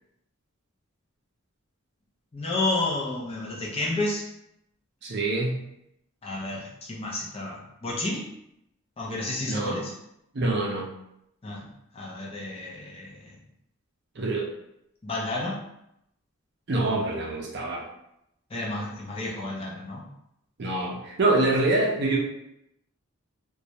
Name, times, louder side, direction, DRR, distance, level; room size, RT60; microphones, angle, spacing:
voice 1, 2.3-4.3 6.2-8.3 9.0-9.9 11.4-11.7 11.9-13.3 15.0-15.6 18.5-20.1, left 2 dB, 25° left, -4 dB, 0.4 m, -31 dB
voice 2, 5.0-5.6 9.5-9.8 10.3-10.9 14.2-14.5 16.7-17.8 20.6-22.2, right 2 dB, 50° right, -1 dB, 0.5 m, -25 dB
2.2 x 2.0 x 2.7 m, 0.80 s
head